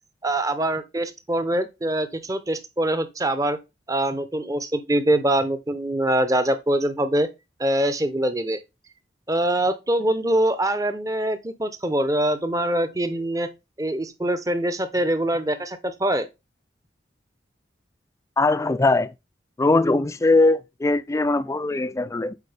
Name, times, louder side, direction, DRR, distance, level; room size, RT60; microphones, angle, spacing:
voice 1, 0.2-3.6 3.9-7.3 7.6-8.6 9.3-13.5 13.8-16.3, right 1 dB, 20° right, 0.7 m, -24 dB
voice 2, 18.4-19.1 19.6-22.4, left 2 dB, 15° left, 0.3 m, -20 dB
8.2 x 4.3 x 3.4 m
head